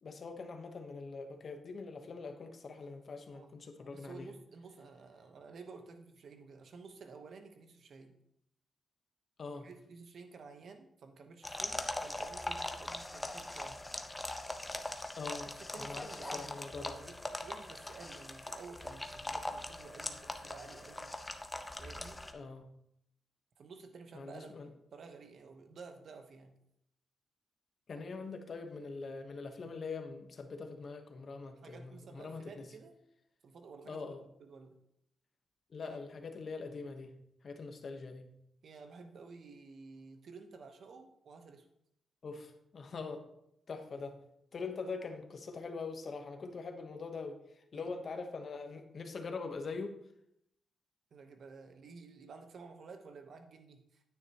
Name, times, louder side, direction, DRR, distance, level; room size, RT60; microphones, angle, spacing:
voice 1, 0.0-4.3 9.4-9.7 15.2-15.5 15.8-17.0 22.3-22.7 24.1-24.7 27.9-32.7 33.9-34.2 35.7-37.1 37.4-38.3 42.2-43.2 43.7-44.2 44.5-49.9, left 4 dB, 50° left, 6 dB, 1.1 m, -43 dB
voice 2, 3.8-8.2 9.5-13.8 15.6-21.1 21.8-22.2 23.6-26.6 27.9-28.2 31.6-33.0 33.4-34.1 34.4-34.8 35.8-36.0 38.6-41.7 43.9-44.0 44.6-44.7 47.7-47.9 51.1-54.0, right 4 dB, 60° right, 6 dB, 1.1 m, -52 dB
sound 1, 11.4-22.3, left 1 dB, 15° left, 0.7 m, -41 dB
9.5 x 9.4 x 3.0 m, 0.76 s
cardioid pair, 110°, 0 cm